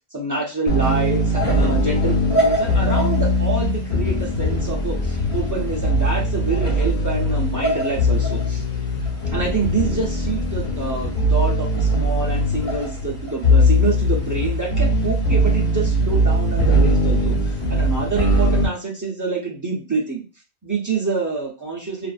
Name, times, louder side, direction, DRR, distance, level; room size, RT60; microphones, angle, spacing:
voice 1, 0.1-8.6 9.1-20.2 20.6-22.1, right 4 dB, 25° right, -2 dB, 0.5 m, -26 dB
sound 1, 0.7-18.6, equal, 55° left, 1.0 m, -20 dB
2.5 x 2.4 x 2.4 m, 0.32 s
omnidirectional pair, 1.1 m